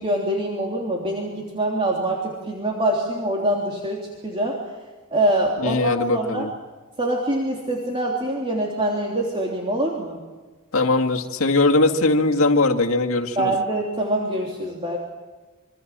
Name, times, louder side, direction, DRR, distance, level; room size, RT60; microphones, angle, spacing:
voice 1, 0.0-4.6 5.1-6.5 7.0-10.2 13.3-15.0, right 1 dB, 25° right, -1 dB, 3.3 m, -24 dB
voice 2, 5.6-6.5 10.7-13.5, left 2 dB, 70° left, 2 dB, 2.1 m, -20 dB
27.5 x 24.5 x 7.5 m, 1.3 s
head